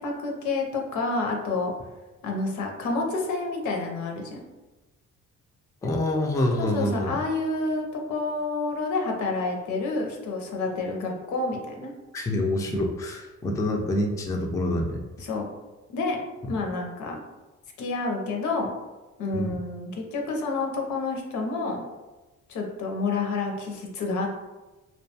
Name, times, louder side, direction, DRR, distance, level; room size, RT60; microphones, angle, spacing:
voice 1, 0.0-1.7 2.2-4.4 6.6-11.9 15.2-15.5 15.9-16.2 16.5-17.2 17.8-18.7 19.2-21.8 22.5-24.3, left 3 dB, 75° left, 1 dB, 0.6 m, -29 dB
voice 2, 5.8-7.2 12.1-15.0 16.4-16.5 19.3-19.6, left 1 dB, 10° left, 1 dB, 0.3 m, -26 dB
2.6 x 2.2 x 2.8 m, 1.1 s
cardioid pair, 90°, 30 cm